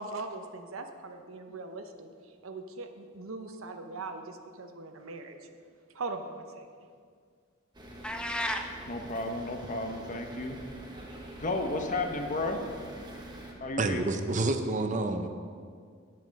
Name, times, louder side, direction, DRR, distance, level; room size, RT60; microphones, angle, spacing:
voice 1, 0.0-2.1 2.4-5.5 5.9-6.7, right 3 dB, 80° right, 6 dB, 0.8 m, -40 dB
sound 1, 7.7-13.5, right 1 dB, 20° right, 1.2 m, -45 dB
sound 2, 8.0-8.7, left 1 dB, 5° left, 0.5 m, -32 dB
voice 2, 8.9-10.6 11.4-12.6 13.6-14.0, left 2 dB, 40° left, 4 dB, 0.9 m, -33 dB
voice 3, 13.8-15.3, right 2 dB, 35° right, 7 dB, 0.7 m, -28 dB
9.7 x 7.8 x 5.3 m, 2.1 s
head